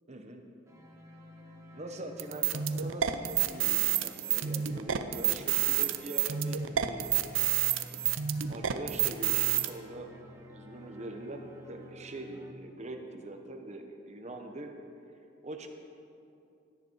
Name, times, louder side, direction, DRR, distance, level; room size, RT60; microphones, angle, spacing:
voice 1, 0.1-0.4 1.7-7.4 8.5-10.1 10.4-14.7 15.4-15.7, right 1 dB, 35° right, 4 dB, 1.2 m, -43 dB
sound 1, 0.7-12.5, left 1 dB, 15° right, 1.3 m, -50 dB
sound 2, 2.2-9.7, right 11 dB, 75° right, 0.7 m, -29 dB
17.5 x 12.5 x 4.7 m, 2.6 s
head